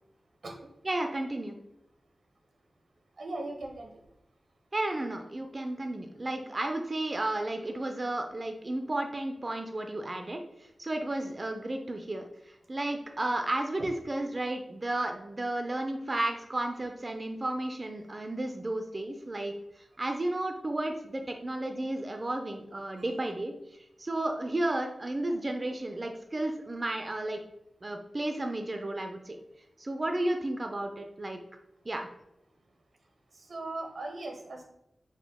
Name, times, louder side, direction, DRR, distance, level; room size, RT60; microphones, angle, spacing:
voice 1, 0.8-1.6 4.7-10.4 10.8-27.4 27.8-29.4 29.8-31.4 31.9-32.1, right 1 dB, 30° right, 4 dB, 0.4 m, -33 dB
voice 2, 3.2-3.9 33.5-34.6, right 2 dB, 70° right, 2 dB, 0.6 m, -38 dB
4.9 x 2.1 x 3.4 m, 0.85 s
wide cardioid pair, 105°, 0 cm